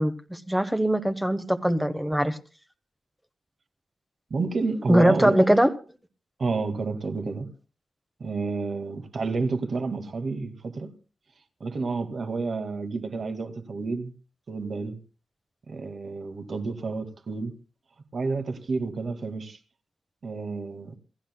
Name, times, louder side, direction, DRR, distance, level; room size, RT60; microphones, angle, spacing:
voice 1, 0.0-2.4 4.9-5.7, right 1 dB, 5° right, 1.1 m, -21 dB
voice 2, 4.3-5.4 6.4-7.5 8.2-10.9 11.6-14.1 14.5-15.0 15.7-17.5 18.1-19.6 20.2-20.9, right 4 dB, 50° right, 1.9 m, -30 dB
27.5 x 15.5 x 2.2 m
wide cardioid pair, 110°, 0 cm